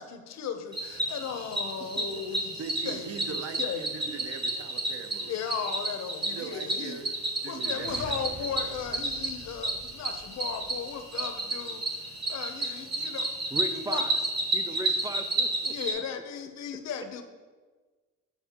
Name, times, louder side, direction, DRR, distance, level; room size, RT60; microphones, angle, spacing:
voice 1, 0.0-3.9 5.3-7.0 7.5-13.3 13.7-14.0 14.7-14.8 15.6-17.2, left 7 dB, 60° left, 7 dB, 0.7 m, -36 dB
Cricket, 0.7-15.9, right 2 dB, 35° right, 1.1 m, -31 dB
voice 2, 1.8-2.2 2.6-5.3 6.2-7.1 7.4-8.7, right 6 dB, 55° right, 8 dB, 0.7 m, -41 dB
sound 1, 7.6-11.6, right 1 dB, 75° right, 1.4 m, -47 dB
voice 3, 13.5-14.1 14.5-16.0, right 2 dB, 10° right, 8 dB, 0.4 m, -37 dB
8.2 x 4.4 x 2.9 m, 1.4 s
cardioid pair, 90°, 30 cm